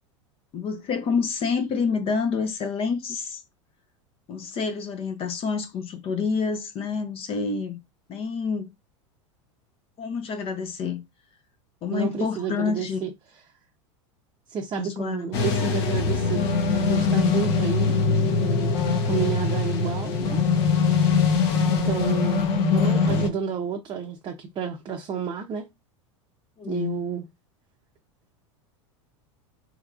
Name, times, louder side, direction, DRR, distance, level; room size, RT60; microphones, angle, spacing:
voice 1, 0.5-3.4 4.3-7.8 8.1-8.7 10.0-11.0 11.8-13.0 14.8-15.3 26.6-27.0, left 5 dB, 35° left, 0.6 m, -28 dB
voice 2, 11.9-13.1 14.5-18.0 18.4-20.4 21.6-25.7 26.7-27.2, right 6 dB, 30° right, 0.6 m, -30 dB
sound 1, 15.3-23.3, left 4 dB, 60° left, 1.0 m, -22 dB
3.4 x 3.1 x 2.4 m
hypercardioid pair, 100°, 16 cm